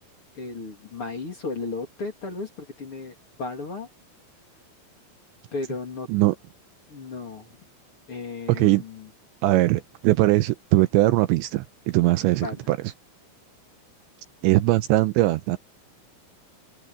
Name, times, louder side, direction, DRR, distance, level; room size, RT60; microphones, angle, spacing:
voice 1, 0.4-3.9 5.5-6.1 6.9-7.5 8.1-9.1 12.4-12.6, left 3 dB, 35° left, 2.9 m, -34 dB
voice 2, 8.5-8.8 9.4-12.8 14.4-15.6, right 18 dB, 85° right, 2.7 m, -20 dB
omnidirectional pair, 5.7 m